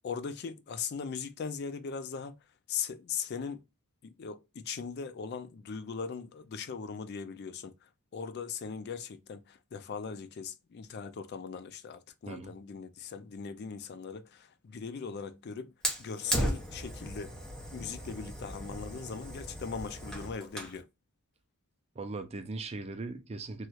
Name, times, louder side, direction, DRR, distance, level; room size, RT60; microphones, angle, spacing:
voice 1, 0.0-2.4 2.7-3.6 4.2-7.7 8.1-15.7 16.0-17.3 17.7-20.9, left 6 dB, 45° left, 0.3 m, -39 dB
Fire, 15.8-20.8, right 1 dB, 5° left, 0.9 m, -36 dB
voice 2, 22.0-23.7, right 3 dB, 30° right, 0.4 m, -39 dB
3.1 x 3.0 x 2.2 m
head